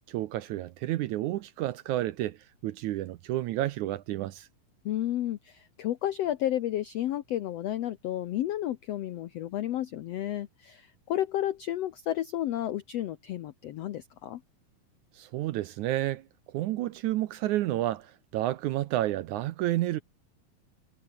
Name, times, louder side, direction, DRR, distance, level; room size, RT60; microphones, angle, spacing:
voice 1, 0.1-2.4 2.6-4.5 15.1-20.0, right 15 dB, 75° right, 1.9 m, -30 dB
voice 2, 4.8-14.4, left 12 dB, 90° left, 1.4 m, -32 dB
omnidirectional pair, 4.1 m